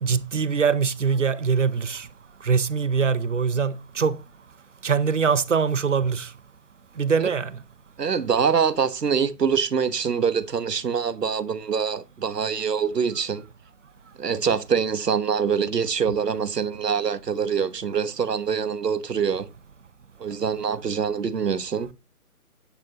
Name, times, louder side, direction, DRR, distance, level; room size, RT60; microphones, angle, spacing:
voice 1, 0.0-2.1 2.4-4.2 4.8-6.3 7.0-7.6, right 6 dB, 50° right, 0.8 m, -23 dB
voice 2, 8.0-13.4 14.2-19.5 20.2-21.9, right 6 dB, 85° right, 1.3 m, -24 dB
10.5 x 9.6 x 2.9 m
hypercardioid pair, 170°, 47 cm